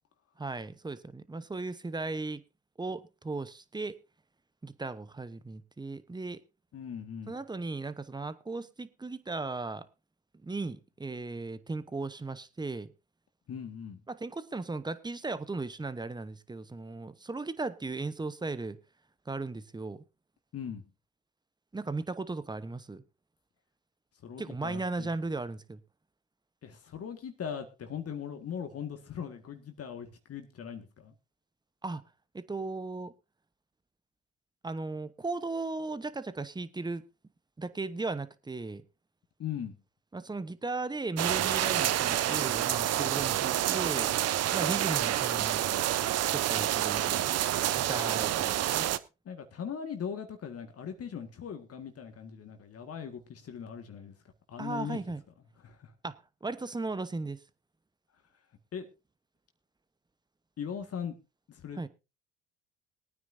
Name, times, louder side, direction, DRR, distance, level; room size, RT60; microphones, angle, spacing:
voice 1, 0.4-2.4 2.8-4.0 4.6-6.4 7.3-9.9 10.4-12.9 14.1-18.8 19.3-20.0 21.7-23.0 24.4-25.8 31.8-32.0 32.3-33.1 34.6-37.0 37.6-38.8 40.1-44.1 44.5-45.6 46.3-47.3 47.7-48.9 54.6-55.2 56.0-57.4 61.8-61.9, right 3 dB, 10° right, 1.0 m, -36 dB
voice 2, 6.7-7.4 13.5-14.0 20.5-20.8 24.2-25.1 26.6-31.1 39.4-39.8 49.2-54.1 54.5-55.0 55.6-55.9 58.7-58.8 60.6-61.1 61.5-61.9, left 7 dB, 40° left, 1.8 m, -39 dB
sound 1, 41.2-49.0, right 12 dB, 45° right, 0.8 m, -28 dB
21.0 x 9.4 x 2.7 m
hypercardioid pair, 70°, 35 cm